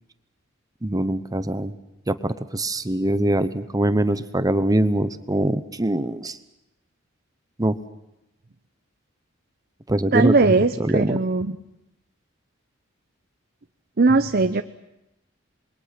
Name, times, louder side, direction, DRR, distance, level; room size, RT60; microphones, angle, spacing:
voice 1, 0.8-1.7 2.1-6.4 7.6-7.8 9.9-11.2, right 1 dB, 20° right, 12 dB, 0.8 m, -23 dB
voice 2, 10.1-11.6 14.0-14.6, right 3 dB, 50° right, 9 dB, 0.7 m, -19 dB
27.5 x 22.0 x 5.9 m, 0.89 s
head